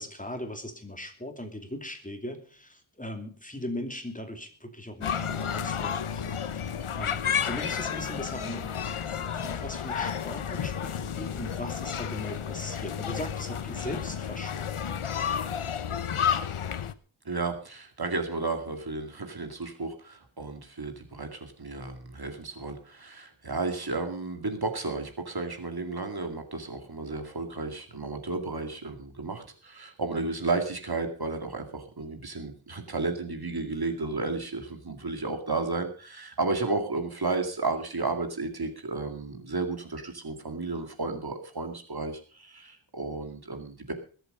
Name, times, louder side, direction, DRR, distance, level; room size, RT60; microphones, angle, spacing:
voice 1, 0.0-6.4 7.0-14.8, left 1 dB, 15° left, 5 dB, 2.8 m, -39 dB
sound 1, 5.0-16.9, left 8 dB, 90° left, 1.0 m, -31 dB
voice 2, 17.3-43.9, right 3 dB, 50° right, 5 dB, 2.3 m, -33 dB
21.5 x 8.0 x 5.4 m, 0.41 s
wide cardioid pair, 80°, 49 cm